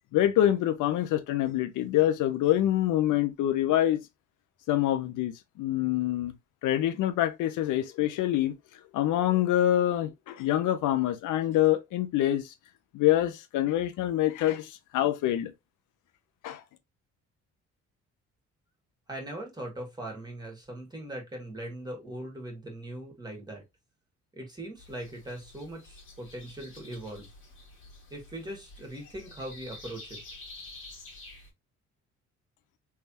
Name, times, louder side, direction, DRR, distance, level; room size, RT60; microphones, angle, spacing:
voice 1, 0.1-4.0 4.7-6.3 6.6-8.5 8.9-12.5 12.9-15.5 16.4-16.6, left 13 dB, 85° left, 0.7 m, -26 dB
voice 2, 19.1-23.6 24.3-27.3 28.1-30.2, right 1 dB, 15° right, 1.9 m, -40 dB
sound 1, 24.8-31.5, left 2 dB, 45° left, 1.9 m, -49 dB
3.4 x 3.3 x 2.9 m
cardioid pair, 90°, 30 cm